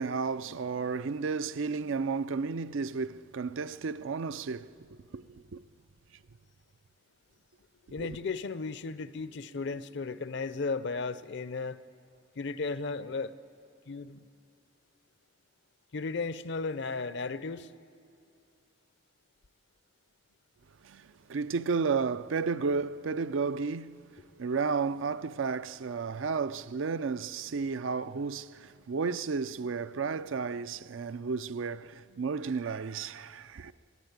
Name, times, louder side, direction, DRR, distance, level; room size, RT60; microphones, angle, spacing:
voice 1, 0.0-4.7 5.1-5.6 8.0-8.2 20.8-24.0 24.4-33.7, right 5 dB, 70° right, 0.5 m, -32 dB
voice 2, 7.9-11.8 12.4-13.3 13.9-14.2 15.9-17.7, left 4 dB, 60° left, 0.6 m, -35 dB
20.5 x 15.0 x 9.4 m
head